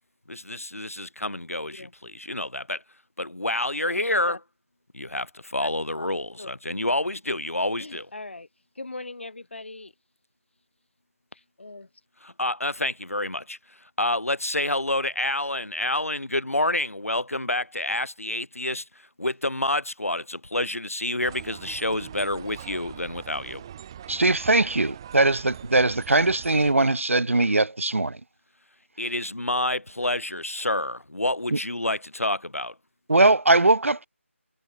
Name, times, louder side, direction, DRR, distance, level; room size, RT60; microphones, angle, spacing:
voice 1, 0.3-2.8 3.2-4.4 4.9-8.1 12.2-13.6 14.0-18.8 19.2-23.6 29.0-32.7, left 1 dB, 80° left, 0.9 m, -28 dB
voice 2, 7.8-8.5 8.7-9.9 11.3-11.9, left 2 dB, 55° left, 3.1 m, -40 dB
sound 1, 21.2-26.7, right 10 dB, 20° right, 3.5 m, -42 dB
voice 3, 24.1-28.2 31.5-31.6 33.1-34.1, right 2 dB, 65° right, 0.7 m, -21 dB
figure-of-eight pair, 160°, 8 cm